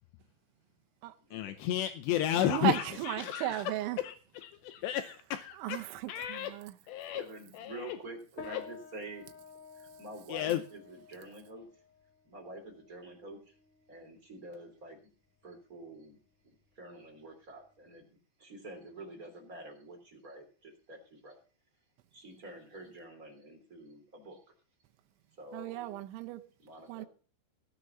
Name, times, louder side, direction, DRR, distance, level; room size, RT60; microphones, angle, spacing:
voice 1, 1.3-3.6 4.0-6.5 6.9-7.2 7.5-8.0 8.5-8.6 10.3-10.6, left 12 dB, 80° left, 2.5 m, -33 dB
voice 2, 2.4-4.0 5.6-6.7 25.5-26.4 26.9-27.1, right 14 dB, 80° right, 3.0 m, -35 dB
voice 3, 7.1-9.4 9.7-11.7 12.2-13.5 13.9-15.0 15.4-16.2 16.4-21.4 22.1-24.4 25.4-25.9 26.6-27.1, right 1 dB, 20° right, 2.6 m, -48 dB
sound 1, 8.4-18.0, left 6 dB, 65° left, 2.1 m, -54 dB
16.5 x 6.7 x 6.9 m
omnidirectional pair, 5.8 m